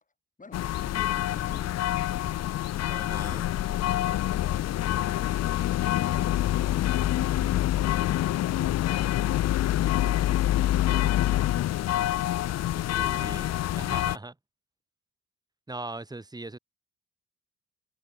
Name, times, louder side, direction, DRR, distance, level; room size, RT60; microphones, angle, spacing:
voice 1, 0.4-5.8, left 4 dB, 25° left, 5.6 m, -52 dB
sound 1, 0.5-14.2, left 13 dB, 60° left, 0.6 m, -26 dB
voice 2, 2.9-3.4 13.0-14.3 15.7-16.6, right 2 dB, 15° right, 1.6 m, -40 dB
cardioid pair, 90°, 30 cm